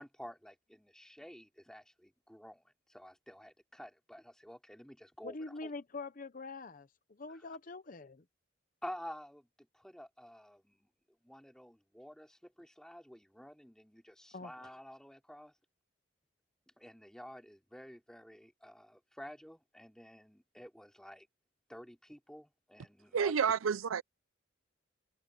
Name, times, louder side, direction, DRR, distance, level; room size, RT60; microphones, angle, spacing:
voice 1, 0.0-5.3 5.6-5.7 7.3-7.4 8.8-10.9 11.2-15.5 16.8-21.3 21.7-23.3, equal, 5° left, 3.0 m, -51 dB
voice 2, 5.2-8.2 14.3-14.5, left 3 dB, 40° left, 0.7 m, -44 dB
voice 3, 23.1-24.0, right 7 dB, 90° right, 0.5 m, -29 dB
head